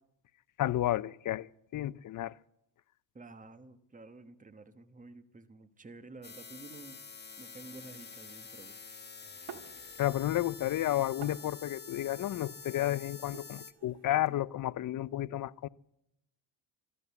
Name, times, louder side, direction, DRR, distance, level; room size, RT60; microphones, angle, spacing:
voice 1, 0.6-2.3 10.0-15.7, left 14 dB, 45° left, 0.5 m, -32 dB
voice 2, 3.1-7.0 7.4-9.1, right 3 dB, 15° right, 1.1 m, -51 dB
sound 1, 6.2-13.7, left 5 dB, 20° left, 1.1 m, -48 dB
sound 2, 9.5-10.3 10.6-14.3, right 8 dB, 55° right, 2.1 m, -52 dB
13.5 x 12.5 x 8.2 m
cardioid pair, 100°, 46 cm